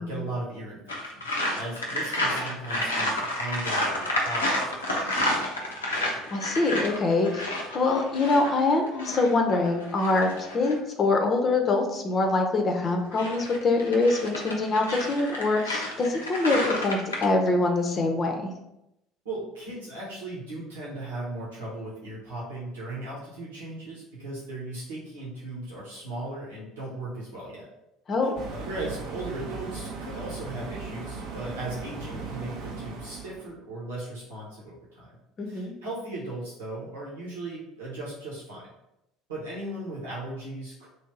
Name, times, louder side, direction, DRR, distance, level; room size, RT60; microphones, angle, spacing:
voice 1, 0.0-5.4 19.2-27.6 28.2-35.1 35.4-38.7 39.3-40.9, right 2 dB, 75° right, -6 dB, 1.1 m, -37 dB
sound 1, 0.9-10.8 12.9-17.3, left 1 dB, 85° left, 0.6 m, -30 dB
voice 2, 6.3-18.5 28.1-28.3 35.4-35.7, left 3 dB, 35° left, 3 dB, 0.7 m, -24 dB
sound 2, 28.4-33.5, right 4 dB, 60° right, 0.7 m, -37 dB
3.2 x 2.7 x 4.5 m, 0.86 s
figure-of-eight pair, 65°, 0 cm